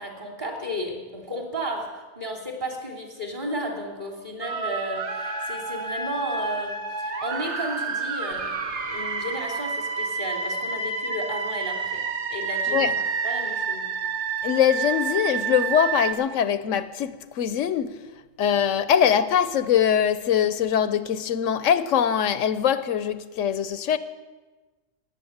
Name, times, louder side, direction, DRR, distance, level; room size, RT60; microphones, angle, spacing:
voice 1, 0.0-12.9 13.2-13.9, equal, 40° right, 3.1 m, -33 dB
sound 1, 4.4-16.1, right 5 dB, 65° right, 1.6 m, -29 dB
voice 2, 14.4-18.0 18.4-24.0, left 9 dB, 85° left, 1.1 m, -22 dB
19.0 x 8.1 x 8.0 m
omnidirectional pair, 1.3 m